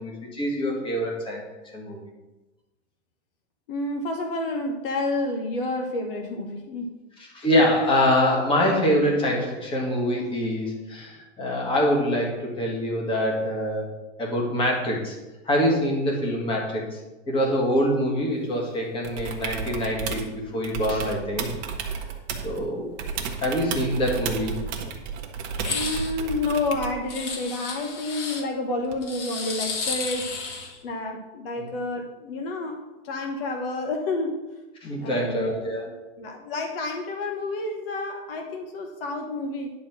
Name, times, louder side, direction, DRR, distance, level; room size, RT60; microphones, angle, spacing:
voice 1, 0.0-1.4 1.7-2.0 7.3-13.9 14.2-15.2 15.5-17.0 17.3-21.5 22.4-22.9 23.4-24.7 31.6-31.7 34.8-35.9, equal, 15° left, -1 dB, 1.7 m, -25 dB
voice 2, 3.7-6.9 25.7-30.4 30.8-34.4 35.0-39.7, left 2 dB, 50° left, 4 dB, 1.2 m, -30 dB
sound 1, 19.0-20.3 20.6-22.6 23.0-27.0 28.9-29.0, right 6 dB, 30° right, 1.1 m, -32 dB
sound 2, 25.6-26.1 27.1-28.4 29.0-30.8, left 4 dB, 75° left, 2.4 m, -32 dB
10.0 x 4.3 x 7.3 m, 1.1 s
supercardioid pair, 170°, 35 cm